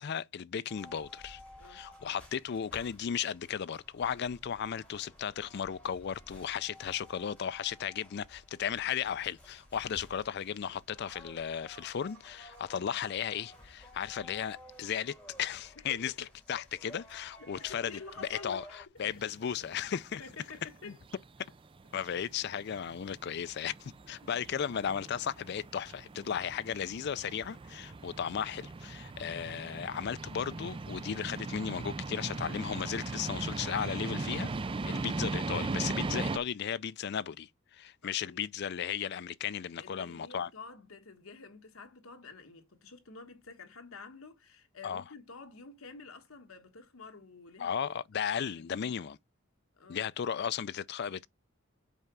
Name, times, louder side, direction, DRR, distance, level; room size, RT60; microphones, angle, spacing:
voice 1, 0.0-1.4 1.7-16.1 16.5-20.2 20.9-21.0 21.9-34.5 34.9-40.5 44.8-45.0 47.6-49.2 49.9-51.3, left 8 dB, 50° left, 0.4 m, -35 dB
sound 1, 0.7-18.9, left 1 dB, 5° left, 3.4 m, -55 dB
voice 2, 15.8-16.2 16.5-16.7 17.4-18.6 19.1-19.2 20.2-21.0 34.8-35.1 38.0-38.4 39.8-48.9 49.8-50.0, left 4 dB, 75° left, 1.3 m, -49 dB
sound 2, 19.0-36.4, right 3 dB, 25° right, 0.4 m, -39 dB
5.5 x 4.7 x 6.0 m
head